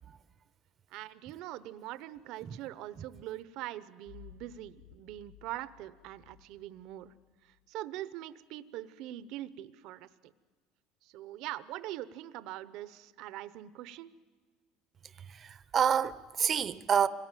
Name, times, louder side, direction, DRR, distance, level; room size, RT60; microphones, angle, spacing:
voice 1, 0.9-7.1 7.4-10.3 11.0-14.1, right 14 dB, 65° right, 0.8 m, -43 dB
sound 1, 4.1-7.6, left 12 dB, 65° left, 5.8 m, -57 dB
voice 2, 15.3-17.1, right 8 dB, 35° right, 0.7 m, -28 dB
26.0 x 18.5 x 9.1 m
supercardioid pair, 120°, 0 cm